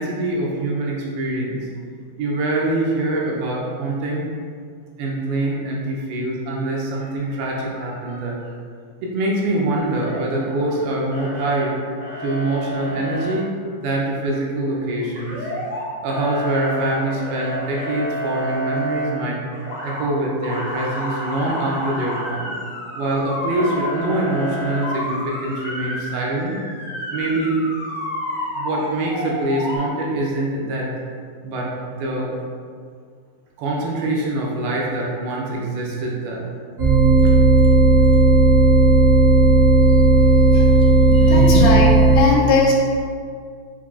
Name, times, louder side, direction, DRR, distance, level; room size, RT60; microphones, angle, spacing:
voice 1, 0.0-1.7 2.2-4.3 5.0-8.6 9.0-11.8 12.2-13.5 13.8-15.5 16.0-19.4 19.8-22.5 22.9-26.6 27.1-27.6 28.5-30.9 31.4-32.3 33.6-36.4 37.2-37.3 41.5-41.6, right 1 dB, 80° right, -3 dB, 2.5 m, -24 dB
Motor vehicle (road) / Siren, 9.8-10.8 11.1-11.6 12.0-13.3 15.1-15.8 16.1-19.1 19.5-20.0 20.4-29.8, equal, 65° left, 1.2 m, -30 dB
sound 1, 36.8-42.2, right 3 dB, 65° right, 1.2 m, -13 dB
voice 2, 40.5-42.7, left 3 dB, 80° left, -3 dB, 2.3 m, -21 dB
6.9 x 2.7 x 2.4 m, 2.1 s
omnidirectional pair, 4.4 m